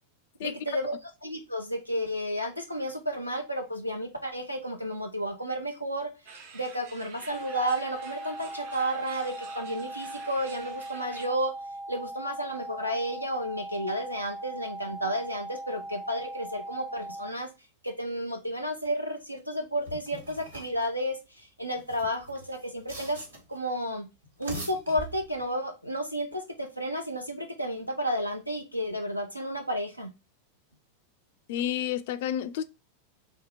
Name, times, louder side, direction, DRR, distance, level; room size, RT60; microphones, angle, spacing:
voice 1, 0.4-6.1 6.5-11.5 11.9-17.5 17.8-23.2 23.5-24.1 24.4-30.1, equal, 90° right, 0.9 m, -32 dB
sound 1, 6.2-11.3, right 4 dB, 50° right, 1.0 m, -48 dB
sound 2, 7.3-17.3, right 1 dB, 15° right, 0.7 m, -40 dB
sound 3, 19.8-20.9 21.7-23.6 24.2-25.6, right 1 dB, 70° right, 1.3 m, -42 dB
voice 2, 31.5-32.6, left 10 dB, 55° left, 0.4 m, -30 dB
3.6 x 3.4 x 4.1 m
figure-of-eight pair, 90°, 0 cm